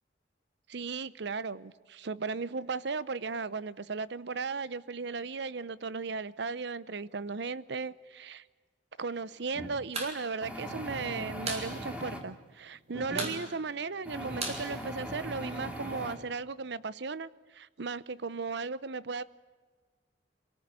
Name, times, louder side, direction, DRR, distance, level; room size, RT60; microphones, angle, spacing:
voice 1, 0.7-8.4 9.0-19.2, right 4 dB, 70° right, 18 dB, 0.8 m, -36 dB
sound 1, 9.5-9.7 10.4-12.2 12.9-13.3 14.1-16.2, equal, 5° right, 3.0 m, -39 dB
sound 2, 9.9-10.2 10.4-10.5 10.8-11.7 12.0-12.1 12.4-12.8 13.1-15.5, right 3 dB, 35° right, 4.5 m, -37 dB
25.0 x 18.0 x 9.6 m, 1.4 s
head